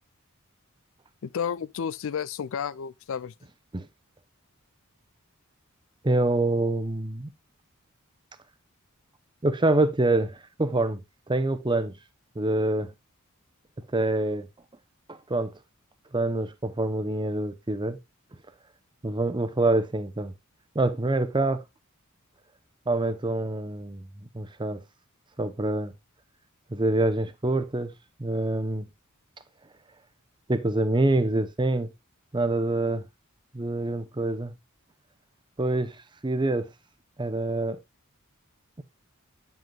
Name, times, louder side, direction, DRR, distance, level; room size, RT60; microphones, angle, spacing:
voice 1, 1.2-3.3, left 7 dB, 65° left, 0.4 m, -31 dB
voice 2, 6.0-7.3 9.4-11.0 11.3-11.9 12.4-12.9 13.9-14.5 15.1-15.5 16.1-18.0 19.0-20.3 20.7-21.6 22.9-24.8 25.4-25.9 26.7-27.9 28.2-28.9 30.5-31.9 32.3-33.1 33.5-34.5 35.6-36.0 36.2-36.7 37.2-37.8, right 2 dB, 20° right, 0.7 m, -26 dB
9.2 x 8.0 x 2.3 m
head